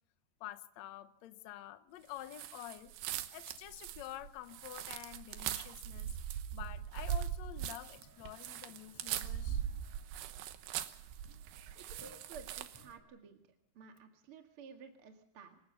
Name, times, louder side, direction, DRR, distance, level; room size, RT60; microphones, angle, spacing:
voice 1, 0.4-2.9 3.3-9.6, left 14 dB, 85° left, 1.5 m, -49 dB
sound 1, 2.3-12.9, right 10 dB, 85° right, 3.2 m, -41 dB
sound 2, 7.9-14.2, equal, 5° right, 6.8 m, -64 dB
voice 2, 11.8-13.4 13.7-15.6, right 5 dB, 45° right, 2.1 m, -53 dB
27.0 x 16.5 x 6.9 m
omnidirectional pair, 4.7 m